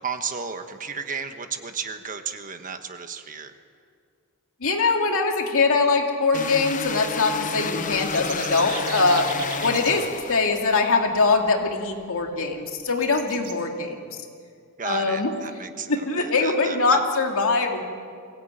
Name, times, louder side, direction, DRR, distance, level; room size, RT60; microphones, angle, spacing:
voice 1, 0.0-3.5 9.9-10.0 14.8-17.0, right 6 dB, 35° right, 7 dB, 1.3 m, -33 dB
voice 2, 4.6-9.3 9.6-10.0 10.3-14.2 14.8-15.3 15.9-17.8, left 3 dB, 65° left, 3 dB, 2.4 m, -22 dB
sound 1, 6.3-10.9, left 4 dB, 35° left, 1.0 m, -31 dB
sound 2, 7.9-9.9 11.7-11.8 12.2-12.3 13.0-13.5, right 7 dB, 90° right, 2.4 m, -37 dB
23.0 x 17.0 x 9.1 m, 2.2 s
head